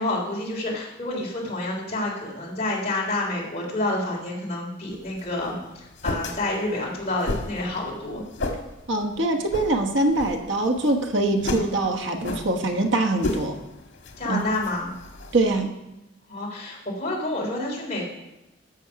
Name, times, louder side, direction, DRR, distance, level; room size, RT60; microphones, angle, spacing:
voice 1, 0.0-8.2 14.2-14.9 16.3-18.0, left 2 dB, 35° left, -3 dB, 3.3 m, -28 dB
sound 1, 4.9-15.6, left 2 dB, 80° left, 1.7 m, -34 dB
voice 2, 8.9-13.6 14.3-14.4 15.3-15.7, right 2 dB, 75° right, 4 dB, 1.2 m, -23 dB
14.5 x 6.2 x 5.8 m, 0.94 s
head